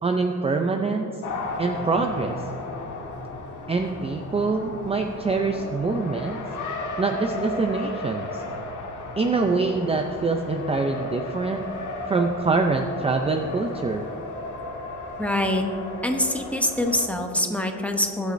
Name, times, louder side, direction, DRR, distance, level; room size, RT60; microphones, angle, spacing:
voice 1, 0.0-1.1 1.6-2.4 3.7-6.4 7.0-8.4 9.2-11.6 12.1-14.1, right 3 dB, 20° right, 4 dB, 0.4 m, -25 dB
Race car auto racing, 1.2-17.1, left 2 dB, 70° left, 1.6 m, -35 dB
voice 2, 15.2-15.6 16.0-18.3, left 1 dB, 5° left, 3 dB, 0.8 m, -24 dB
21.5 x 8.2 x 2.6 m, 2.6 s
cardioid pair, 150°, 31 cm